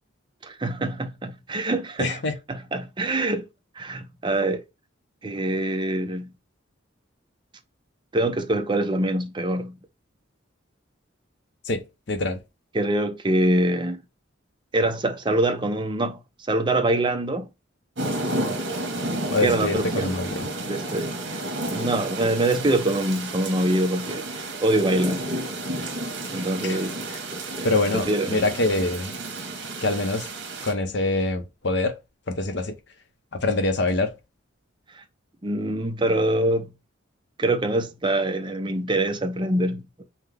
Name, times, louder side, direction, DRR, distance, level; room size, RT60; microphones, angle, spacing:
voice 1, 0.4-2.2 2.5-3.4 3.7-4.6 5.2-6.3 8.1-9.8 12.7-14.0 14.7-16.2 16.5-17.5 19.1-20.1 20.6-21.4 21.7-25.3 26.3-27.0 27.5-28.4 34.9-35.0 35.4-36.7 37.4-40.0, right 1 dB, 25° right, 0.6 m, -25 dB
voice 2, 2.0-2.3 11.6-12.4 19.3-20.5 26.6-26.8 27.6-29.1 29.8-30.3 30.6-32.0 32.3-32.8 33.3-34.1, left 2 dB, 60° left, 0.8 m, -25 dB
sound 1, 18.0-30.7, right 1 dB, 60° right, 1.4 m, -31 dB
5.7 x 2.2 x 3.4 m
head